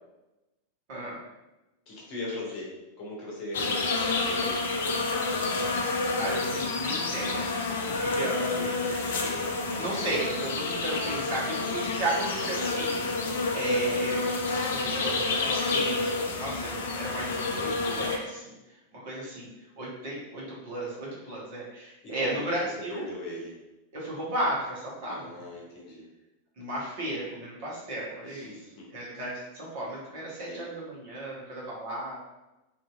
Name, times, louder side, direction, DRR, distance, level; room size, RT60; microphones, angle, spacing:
voice 1, 1.9-2.7 3.0-4.7 22.0-22.6 22.9-23.6 25.1-26.0 28.2-28.9 30.5-30.7, left 1 dB, 40° left, -3 dB, 0.9 m, -39 dB
sound 1, 3.5-18.2, left 3 dB, 60° left, 0.4 m, -29 dB
voice 2, 6.2-7.5 7.8-13.1 13.5-18.4 19.0-19.5 19.8-23.1 23.9-25.2 26.6-28.5 28.9-32.2, right 1 dB, 50° right, -6 dB, 1.1 m, -34 dB
2.7 x 2.6 x 2.3 m, 1.0 s
figure-of-eight pair, 90°, 0 cm